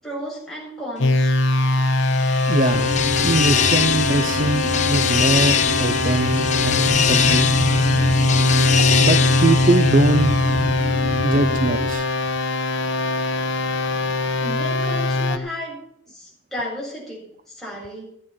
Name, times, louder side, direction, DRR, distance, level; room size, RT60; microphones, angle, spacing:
voice 1, 0.0-1.3 14.4-15.8 16.1-18.1, equal, ahead, -6 dB, 7.5 m, -33 dB
sound 1, 1.0-15.4, left 2 dB, 75° left, 1.2 m, -21 dB
sound 2, 1.7-10.8, left 8 dB, 35° left, 0.7 m, -24 dB
voice 2, 2.5-2.9 3.2-7.5 9.0-10.3 11.2-12.2, right 2 dB, 40° right, 11 dB, 0.5 m, -22 dB
sound 3, 2.7-11.9, left 1 dB, 80° right, 1.9 m, -27 dB
15.0 x 9.9 x 5.9 m, 0.72 s
head